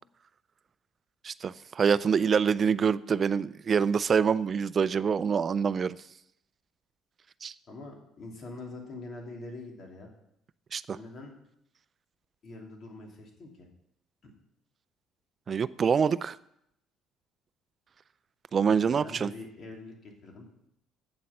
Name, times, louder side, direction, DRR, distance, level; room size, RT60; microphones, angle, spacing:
voice 1, 1.2-6.0 7.4-7.5 10.7-11.0 15.5-16.4 18.5-19.3, right 6 dB, 40° right, 17 dB, 0.4 m, -26 dB
voice 2, 7.7-10.1 10.9-11.3 12.4-13.7 14.2-14.3 18.7-20.7, left 2 dB, 45° left, 1 dB, 2.7 m, -44 dB
8.8 x 7.4 x 5.7 m, 0.77 s
cardioid pair, 105°, 0 cm